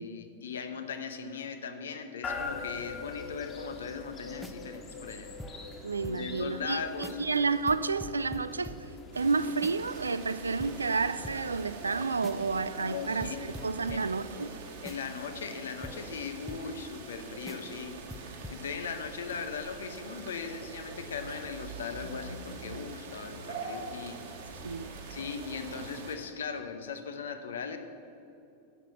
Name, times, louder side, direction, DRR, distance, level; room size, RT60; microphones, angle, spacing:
voice 1, 0.0-5.3 6.1-7.2 12.7-13.5 13.9-14.0 14.8-24.5 25.1-27.8, left 6 dB, 65° left, 1.0 m, -39 dB
sound 1, 2.2-15.2, left 3 dB, 30° left, 1.9 m, -44 dB
sound 2, 4.3-6.4 6.7-6.8 7.0-7.4 7.7-10.0 10.3-10.4 10.6-12.6 12.9-13.0 13.2-17.2 17.5-17.8 18.1-18.6, equal, ahead, 0.7 m, -46 dB
voice 2, 5.8-8.7 9.1-14.6 24.6-24.9, right 4 dB, 75° right, 0.4 m, -30 dB
sound 3, 9.1-26.2, right 4 dB, 55° right, 1.8 m, -44 dB
11.5 x 7.5 x 7.0 m
figure-of-eight pair, 90°, 0 cm